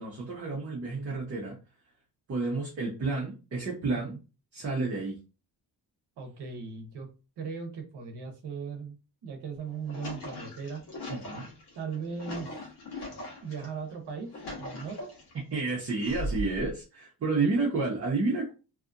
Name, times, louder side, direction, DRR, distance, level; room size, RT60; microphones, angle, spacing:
voice 1, 0.0-1.6 2.3-4.2 4.5-5.2 11.1-11.5 15.5-18.5, right 3 dB, 35° right, -3 dB, 0.7 m, -30 dB
voice 2, 6.2-7.1 7.4-8.9 9.2-10.8 11.7-12.6 13.4-15.1 17.4-17.6, right 5 dB, 75° right, 3 dB, 0.8 m, -38 dB
sound 1, 9.6-13.7 14.1-15.4 16.0-16.7, left 1 dB, 75° left, 1.2 m, -39 dB
2.8 x 2.4 x 2.5 m, 0.31 s
wide cardioid pair, 160°, 40 cm